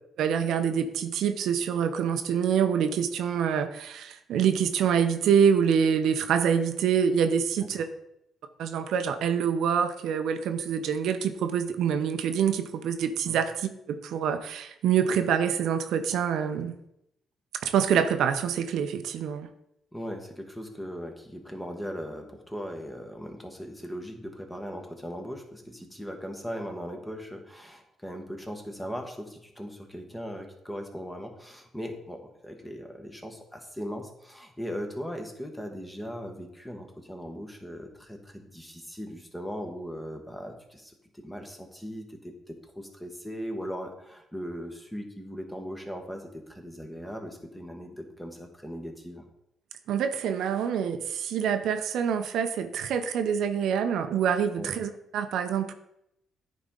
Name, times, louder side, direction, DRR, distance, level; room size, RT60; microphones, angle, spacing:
voice 1, 0.2-7.9 8.6-16.8 17.7-19.5 49.9-55.7, right 7 dB, 80° right, 8 dB, 0.6 m, -26 dB
voice 2, 19.9-49.2 54.5-54.7, equal, 10° left, 3 dB, 1.3 m, -39 dB
9.7 x 4.2 x 3.8 m, 0.80 s
cardioid pair, 90°, 0 cm